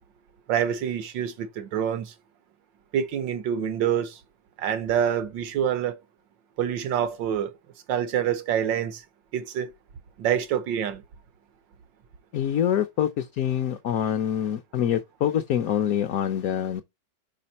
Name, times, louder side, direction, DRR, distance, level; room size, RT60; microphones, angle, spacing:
voice 1, 0.5-2.1 2.9-4.2 4.6-6.0 6.6-7.5 7.9-9.0 9.3-9.7 10.2-11.0, right 9 dB, 85° right, 1.7 m, -26 dB
voice 2, 12.3-16.8, left 9 dB, 65° left, 1.0 m, -25 dB
5.7 x 5.0 x 4.1 m
omnidirectional pair, 1.9 m